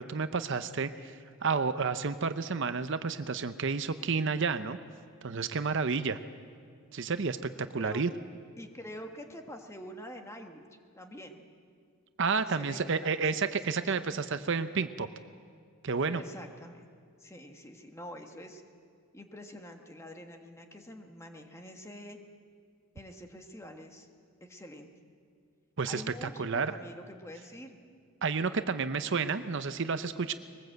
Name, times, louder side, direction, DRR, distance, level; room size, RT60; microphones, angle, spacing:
voice 1, 0.0-4.8 5.2-6.2 6.9-8.1 12.2-15.1 15.8-16.2 25.8-26.8 28.2-30.3, right 5 dB, 55° right, 11 dB, 0.7 m, -31 dB
voice 2, 7.6-8.0 8.6-10.6 11.0-11.4 12.5-13.6 14.0-14.1 16.1-16.9 17.2-18.6 19.1-22.2 22.9-24.1 24.4-24.9 25.9-27.8, equal, 15° left, 4 dB, 1.5 m, -46 dB
21.5 x 19.5 x 7.9 m, 2.1 s
head